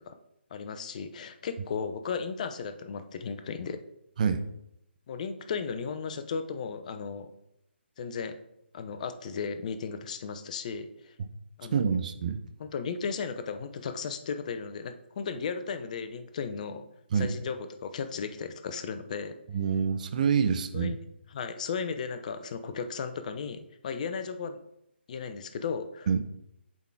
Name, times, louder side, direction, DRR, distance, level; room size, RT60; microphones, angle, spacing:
voice 1, 0.5-3.8 5.1-7.3 8.0-8.3 8.7-11.1 11.6-12.0 12.6-16.9 17.1-19.4 20.7-21.0 21.3-24.6 25.1-26.2, left 5 dB, 40° left, 9 dB, 0.6 m, -35 dB
voice 2, 11.7-12.4 17.1-17.3 19.5-21.0 26.1-26.2, right 6 dB, 40° right, 11 dB, 0.6 m, -26 dB
7.2 x 3.8 x 4.7 m, 0.80 s
figure-of-eight pair, 150°, 6 cm